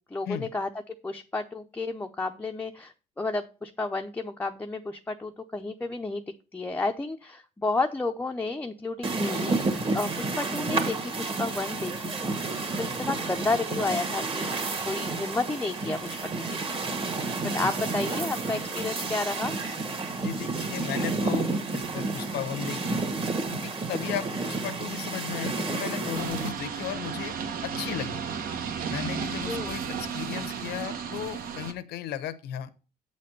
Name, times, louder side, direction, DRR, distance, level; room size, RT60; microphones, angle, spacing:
voice 1, 0.1-6.2 6.5-11.9 12.2-14.5 14.8-16.8 17.5-19.5 29.5-29.7, left 3 dB, 10° left, 3 dB, 0.6 m, -32 dB
sound 1, 9.0-26.5, right 3 dB, 30° right, 1.7 m, -30 dB
voice 2, 20.2-23.0 23.5-27.4 27.6-28.2 28.9-32.7, left 10 dB, 75° left, 10 dB, 0.8 m, -35 dB
sound 2, 26.1-31.7, right 6 dB, 60° right, 1.2 m, -33 dB
8.2 x 4.2 x 6.5 m, 0.34 s
cardioid pair, 110°, 17 cm